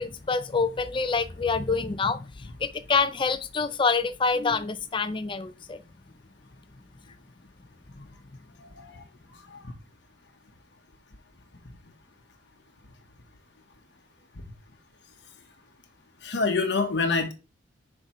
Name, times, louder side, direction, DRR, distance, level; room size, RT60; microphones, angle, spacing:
voice 1, 0.0-2.3 2.6-5.8, left 4 dB, 25° left, 0.4 m, -26 dB
voice 2, 8.6-9.0 9.5-9.6 16.2-17.3, left 4 dB, 60° left, 1.0 m, -26 dB
7.9 x 5.4 x 3.1 m
head